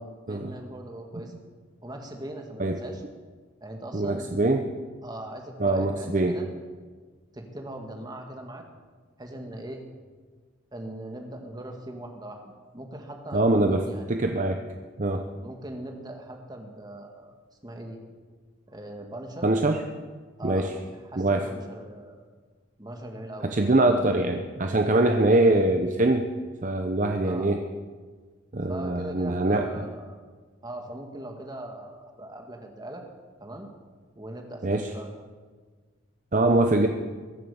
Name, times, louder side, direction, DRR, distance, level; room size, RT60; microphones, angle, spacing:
voice 1, 0.3-1.3 1.8-3.0 3.6-4.3 5.0-6.5 7.3-8.6 9.2-9.8 10.7-14.1 15.4-17.3 17.6-18.0 18.7-19.5 20.4-22.2 22.8-23.5 25.3-25.4 27.2-27.5 28.7-30.2 30.6-33.0 33.4-33.7 34.1-35.1, right 1 dB, 20° right, 3 dB, 1.8 m, -40 dB
voice 2, 3.9-4.7 5.6-6.4 13.3-14.6 15.0-15.3 19.4-19.8 20.4-20.7 21.2-21.5 23.4-26.3 26.6-27.7 28.5-29.9 34.6-34.9 36.3-36.9, right 2 dB, 40° right, 5 dB, 0.8 m, -23 dB
22.5 x 7.6 x 7.1 m, 1.5 s
head